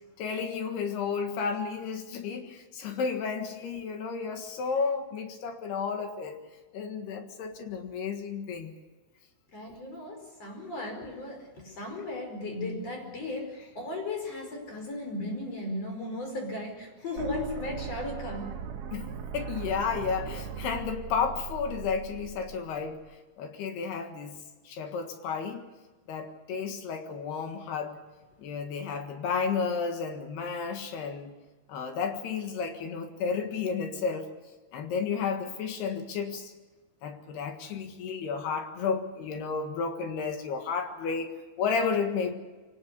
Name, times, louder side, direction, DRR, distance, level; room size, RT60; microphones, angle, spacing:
voice 1, 0.2-6.4 6.7-8.7 18.9-23.0 23.4-24.4 24.7-25.6 26.1-28.0 28.4-31.3 31.7-34.3 34.7-36.5 37.0-42.3, left 5 dB, 70° left, 6 dB, 3.6 m, -32 dB
voice 2, 9.5-18.5, left 2 dB, 35° left, 3 dB, 5.8 m, -36 dB
sound 1, 17.2-23.1, right 7 dB, 65° right, 3.2 m, -39 dB
24.0 x 18.5 x 6.8 m, 1.3 s
omnidirectional pair, 5.0 m